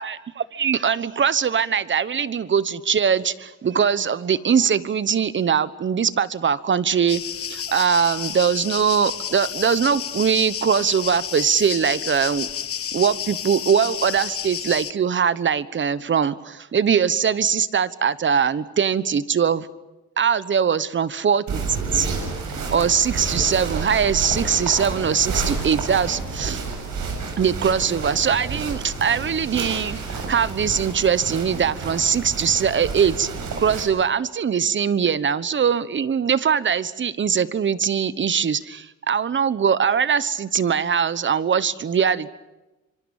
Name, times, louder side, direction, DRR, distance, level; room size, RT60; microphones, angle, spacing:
voice 1, 0.0-12.5 12.9-19.7 20.2-21.6 21.9-22.1 22.7-26.6 27.4-33.3 33.6-42.3, right 7 dB, 40° right, 16 dB, 1.1 m, -21 dB
sound 1, 7.1-14.9, left 9 dB, 50° left, 1.0 m, -31 dB
sound 2, 21.5-33.8, right 4 dB, 70° right, 7.5 m, -30 dB
26.0 x 24.5 x 7.2 m, 1.1 s
cardioid pair, 90°, 30 cm